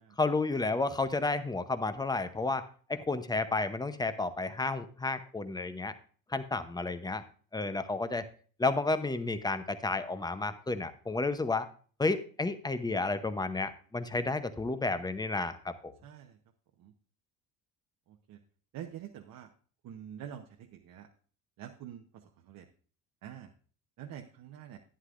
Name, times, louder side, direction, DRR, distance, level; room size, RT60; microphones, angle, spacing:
voice 1, 0.2-2.6 2.9-5.9 6.3-7.2 7.5-8.2 8.6-11.7 12.0-15.9, left 3 dB, 10° left, 11 dB, 0.7 m, -31 dB
voice 2, 16.0-16.4 16.8-16.9 18.1-18.4 18.7-19.5 19.8-21.1 21.6-22.7 23.2-23.5 24.0-24.8, right 10 dB, 60° right, 3 dB, 1.0 m, -46 dB
11.5 x 9.7 x 2.5 m, 0.42 s
cardioid pair, 115°, 39 cm